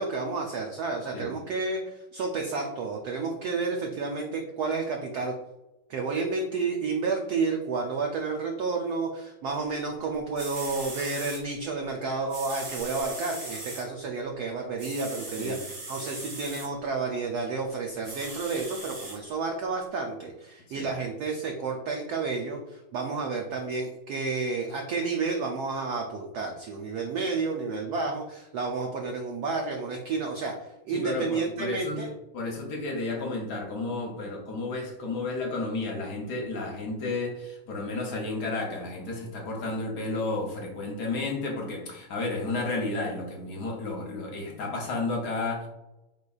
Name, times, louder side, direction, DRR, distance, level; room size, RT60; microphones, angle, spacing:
voice 1, 0.0-5.3 5.9-30.6 30.9-32.1, right 4 dB, 85° right, 2 dB, 0.8 m, -31 dB
sound 1, 10.1-10.2 10.4-11.4 12.3-13.8 14.8-16.7 18.0-19.2 19.8-19.9, right 2 dB, 40° right, 1.8 m, -39 dB
voice 2, 30.9-32.1 32.3-45.7, left 3 dB, 60° left, 0 dB, 1.2 m, -32 dB
4.7 x 4.0 x 2.3 m, 0.98 s
omnidirectional pair, 2.3 m